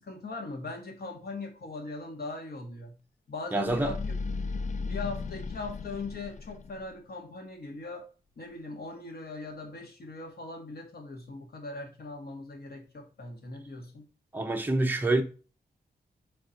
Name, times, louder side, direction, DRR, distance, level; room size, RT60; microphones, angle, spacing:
voice 1, 0.0-3.0 3.3-4.0 4.3-4.4 4.8-8.0 8.4-14.1, left 3 dB, 65° left, 1.5 m, -40 dB
voice 2, 3.5-3.9 14.3-15.2, right 2 dB, 10° right, 0.7 m, -26 dB
sound 1, 3.7-6.9, left 4 dB, 45° left, 0.5 m, -36 dB
4.3 x 4.3 x 5.1 m
wide cardioid pair, 115°, 17 cm